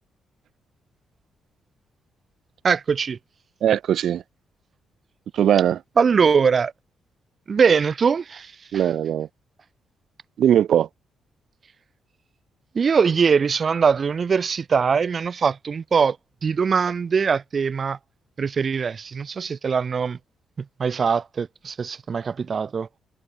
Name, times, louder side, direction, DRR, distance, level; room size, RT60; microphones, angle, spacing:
voice 1, 2.6-3.2 6.0-6.7 7.5-8.9 12.7-18.0 18.4-20.2 20.6-22.9, right 6 dB, 45° right, 4.9 m, -22 dB
voice 2, 3.6-4.2 5.3-5.8 8.7-9.3 10.4-10.9, right 10 dB, 70° right, 3.9 m, -19 dB
cardioid pair, 85°, 0 cm